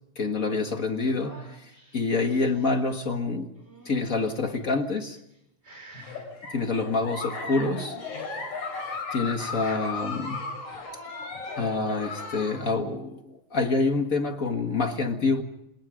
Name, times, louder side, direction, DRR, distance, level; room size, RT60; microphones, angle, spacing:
voice 1, 0.1-3.5 3.8-5.2 6.5-8.0 9.1-10.5 11.6-15.4, left 3 dB, 40° left, 1.2 m, -27 dB
sound 1, 1.0-2.8 3.6-4.4 5.1-5.4 5.6-6.3 7.6-8.3, right 2 dB, 15° right, 5.9 m, -50 dB
Giggle, 5.9-12.6, left 4 dB, 60° left, 6.1 m, -36 dB
28.0 x 21.0 x 5.0 m
omnidirectional pair, 3.9 m